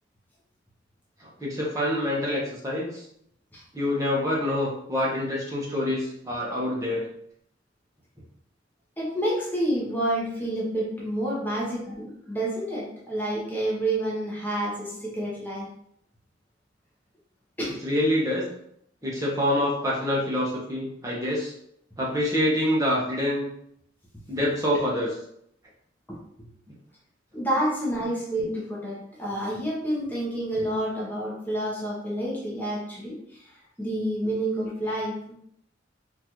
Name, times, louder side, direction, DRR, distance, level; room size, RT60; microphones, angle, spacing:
voice 1, 1.2-3.0 3.7-7.0 17.8-18.5 19.0-21.5 22.0-23.5 24.3-25.2, left 1 dB, 20° right, -5 dB, 0.8 m, -26 dB
voice 2, 9.0-15.7 17.6-17.8 26.1-26.2 27.3-33.4 33.8-35.2, right 1 dB, 10° left, -5 dB, 0.8 m, -29 dB
3.8 x 2.4 x 2.9 m, 0.69 s
head